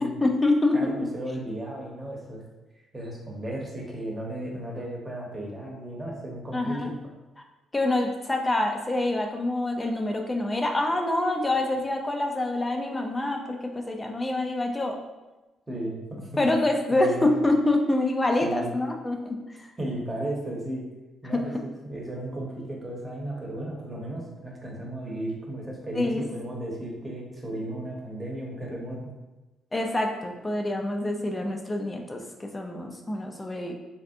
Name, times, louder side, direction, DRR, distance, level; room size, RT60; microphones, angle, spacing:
voice 1, 0.0-0.9 6.5-6.9 7.7-15.0 16.4-19.7 21.3-21.6 26.0-26.2 29.7-33.7, left 2 dB, 20° left, 2 dB, 0.4 m, -26 dB
voice 2, 0.7-2.4 2.9-6.9 15.7-16.4 16.9-17.4 18.4-18.8 19.8-20.8 21.2-29.0, right 1 dB, 20° right, -2 dB, 0.9 m, -35 dB
3.2 x 2.7 x 2.5 m, 1.1 s
cardioid pair, 90°, 0 cm